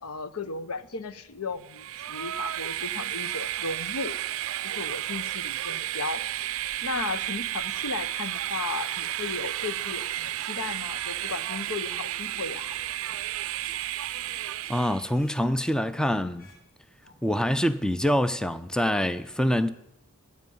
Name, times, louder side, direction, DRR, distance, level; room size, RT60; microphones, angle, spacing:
voice 1, 0.0-4.2 4.6-6.2 6.8-12.8, left 4 dB, 80° left, 0.8 m, -35 dB
Train, 1.6-15.1, right 13 dB, 65° right, 0.4 m, -32 dB
sound 1, 9.1-9.8 10.1-12.7 13.0-14.9 15.1-16.6 16.9-17.1, left 2 dB, 60° left, 4.6 m, -55 dB
voice 2, 14.7-16.5 17.2-19.7, equal, 5° left, 0.4 m, -25 dB
9.3 x 9.2 x 9.2 m
head